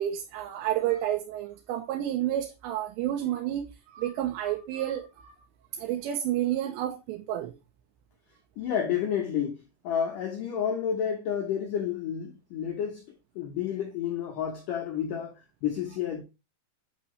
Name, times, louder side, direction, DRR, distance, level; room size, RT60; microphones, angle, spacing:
voice 1, 0.0-5.3 5.7-7.6, right 12 dB, 80° right, 2.8 m, -30 dB
voice 2, 8.6-13.0 13.4-16.2, left 8 dB, 75° left, 2.0 m, -30 dB
8.6 x 6.0 x 3.1 m
omnidirectional pair, 5.4 m